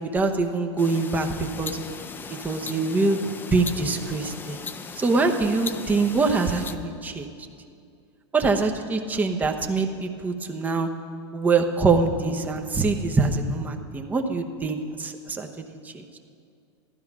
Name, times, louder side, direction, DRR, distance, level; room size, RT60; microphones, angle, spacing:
voice 1, 0.0-1.8 2.4-3.2 3.5-4.6 4.9-7.3 8.3-10.9 11.3-16.0, right 3 dB, 10° right, 4 dB, 0.9 m, -24 dB
sound 1, 0.8-6.8, left 5 dB, 15° left, 0.5 m, -38 dB
14.0 x 13.0 x 6.0 m, 2.3 s
supercardioid pair, 145°, 15 cm